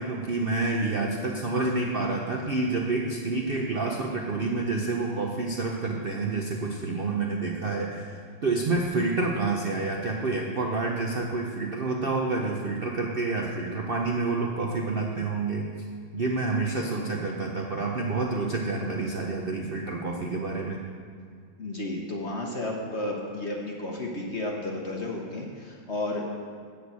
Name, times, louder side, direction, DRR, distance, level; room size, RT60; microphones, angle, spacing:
voice 1, 0.0-15.7 16.1-20.8, right 3 dB, 80° right, 0 dB, 0.5 m, -28 dB
voice 2, 21.6-26.2, left 2 dB, 50° left, 0 dB, 0.9 m, -32 dB
7.8 x 6.4 x 8.1 m, 2.1 s
omnidirectional pair, 2.2 m